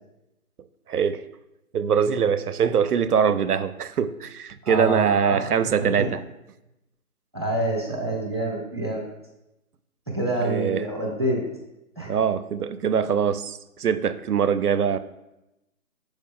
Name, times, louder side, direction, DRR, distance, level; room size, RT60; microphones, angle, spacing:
voice 1, 0.9-1.3 1.7-6.2 10.4-10.8 12.1-15.0, right 7 dB, 80° right, 13 dB, 0.6 m, -23 dB
voice 2, 4.6-5.4 5.8-6.1 7.3-9.0 10.1-11.4 12.0-12.1, right 1 dB, 20° right, -3 dB, 0.7 m, -27 dB
6.3 x 5.1 x 3.6 m, 0.94 s
figure-of-eight pair, 160°, 45 cm